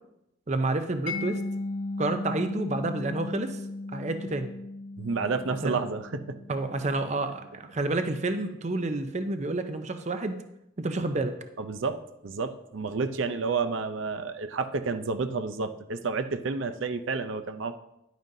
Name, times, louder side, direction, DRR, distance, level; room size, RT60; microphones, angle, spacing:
voice 1, 0.5-1.4 2.0-3.6 3.9-4.5 5.6-5.8 6.5-10.4 10.8-11.4, right 2 dB, 35° right, 8 dB, 0.5 m, -29 dB
Mallet percussion, 1.1-7.8, left 2 dB, 85° left, 0.7 m, -37 dB
voice 2, 5.0-6.4 7.0-7.1 11.6-17.8, right 4 dB, 85° right, 10 dB, 0.6 m, -30 dB
11.0 x 9.2 x 2.7 m, 0.84 s
head